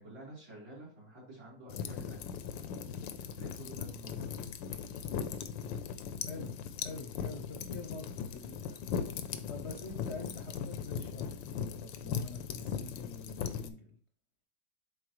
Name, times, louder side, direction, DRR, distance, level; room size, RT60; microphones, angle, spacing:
voice 1, 0.0-2.2 3.3-4.4, right 1 dB, 85° right, -7 dB, 4.7 m, -50 dB
sound 1, 1.7-13.7, left 7 dB, 85° left, 1.3 m, -39 dB
voice 2, 6.8-8.8 9.5-14.0, left 3 dB, 55° left, 3 dB, 0.8 m, -46 dB
9.6 x 4.0 x 3.1 m, 0.39 s
omnidirectional pair, 2.0 m